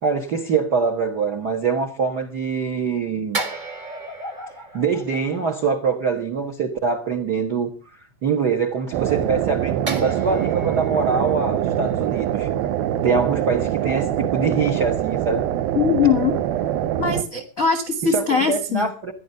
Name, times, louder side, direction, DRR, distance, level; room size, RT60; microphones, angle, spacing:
voice 1, 0.0-3.4 4.7-7.7 8.2-12.5 13.0-15.5 18.0-19.1, right 5 dB, 60° right, 1.0 m, -24 dB
sound 1, 3.3-6.0 9.9-13.1 13.4-13.6, right 2 dB, 45° right, 0.5 m, -35 dB
sound 2, 8.9-17.2, right 11 dB, 80° right, 2.7 m, -24 dB
voice 2, 15.7-16.4 17.0-18.9, left 6 dB, 55° left, 0.9 m, -21 dB
15.5 x 10.5 x 6.6 m
omnidirectional pair, 4.3 m